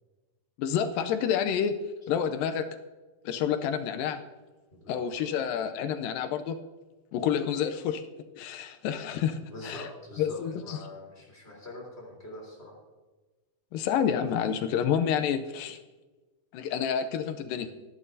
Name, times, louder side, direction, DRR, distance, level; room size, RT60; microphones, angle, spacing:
voice 1, 0.6-1.8 2.1-2.7 3.3-4.2 4.9-6.6 7.1-8.0 8.4-9.9 10.2-10.8 13.7-15.8 16.5-17.7, left 8 dB, 85° left, 8 dB, 2.3 m, -29 dB
voice 2, 4.7-5.2 9.5-12.8, left 1 dB, 15° left, -2 dB, 3.7 m, -44 dB
21.0 x 10.0 x 2.7 m, 1.2 s
omnidirectional pair, 4.0 m